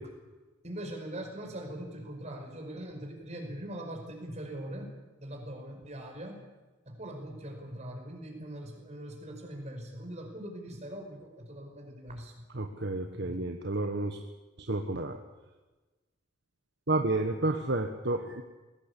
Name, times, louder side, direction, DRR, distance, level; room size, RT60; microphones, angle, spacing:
voice 1, 0.6-6.4 6.9-12.5 13.1-13.5, right 1 dB, 35° right, 3 dB, 5.3 m, -42 dB
voice 2, 12.6-14.2 14.7-15.2 16.9-18.4, right 2 dB, 60° right, 5 dB, 1.4 m, -30 dB
21.0 x 18.0 x 8.4 m, 1.2 s
head